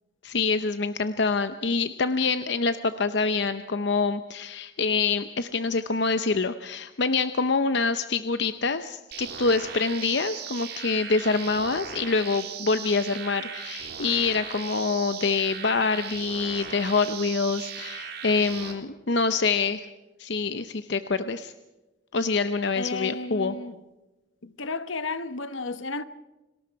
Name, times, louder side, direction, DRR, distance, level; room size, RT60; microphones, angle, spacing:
voice 1, 0.2-19.9 20.2-21.5 22.1-23.6, left 4 dB, 60° left, 0.7 m, -26 dB
sound 1, 9.1-18.7, right 7 dB, 50° right, 3.0 m, -38 dB
voice 2, 22.8-23.7 24.4-26.0, left 3 dB, 75° left, 1.1 m, -33 dB
29.5 x 19.5 x 4.7 m
head